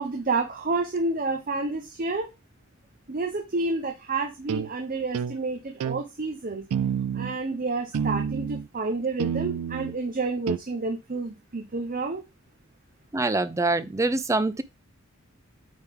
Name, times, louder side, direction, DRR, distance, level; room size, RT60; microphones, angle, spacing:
voice 1, 0.0-2.3 3.1-6.6 7.1-12.2, right 3 dB, 40° right, 0.8 m, -29 dB
sound 1, 4.5-4.7 5.1-5.4 5.8-6.0 6.7-7.4 7.9-8.7 9.2-10.0 10.5-10.6, right 7 dB, 90° right, 0.3 m, -28 dB
voice 2, 13.1-14.6, right 2 dB, 15° right, 0.4 m, -24 dB
8.8 x 3.6 x 3.6 m
head